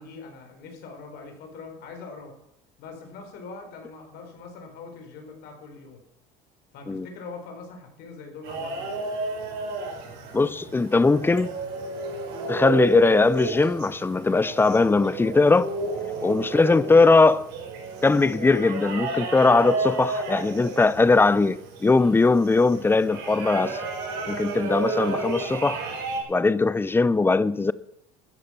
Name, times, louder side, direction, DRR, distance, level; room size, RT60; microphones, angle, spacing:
voice 1, 0.0-2.3 2.8-6.0 6.7-9.1 16.2-16.5, left 4 dB, 65° left, 4.1 m, -42 dB
sound 1, 8.4-26.2, right 4 dB, 70° right, 4.5 m, -32 dB
voice 2, 10.3-11.5 12.5-15.7 16.2-17.5 18.0-23.9 24.3-25.8 26.3-27.7, left 3 dB, 10° left, 0.6 m, -20 dB
13.5 x 9.8 x 5.8 m
supercardioid pair, 95°, 18 cm